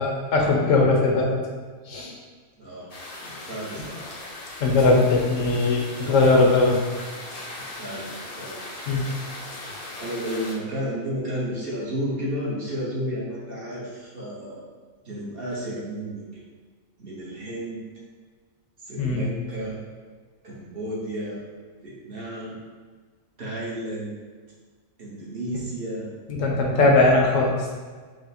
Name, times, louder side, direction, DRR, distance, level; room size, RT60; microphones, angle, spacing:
voice 1, 0.0-1.4 1.9-2.1 4.6-6.8 8.9-9.1 19.0-19.2 26.3-27.6, left 3 dB, 75° left, 0 dB, 1.1 m, -19 dB
voice 2, 2.6-2.9 3.2-4.1 4.8-5.0 7.6-8.6 10.0-14.6 15.0-16.4 17.0-17.8 18.8-19.8 20.4-21.4 21.8-22.6 23.4-24.1 25.0-26.1, equal, 50° right, -5 dB, 1.0 m, -32 dB
sound 1, 2.9-10.5, left 2 dB, 45° left, 0.5 m, -39 dB
4.7 x 2.0 x 4.1 m, 1.5 s
omnidirectional pair, 1.4 m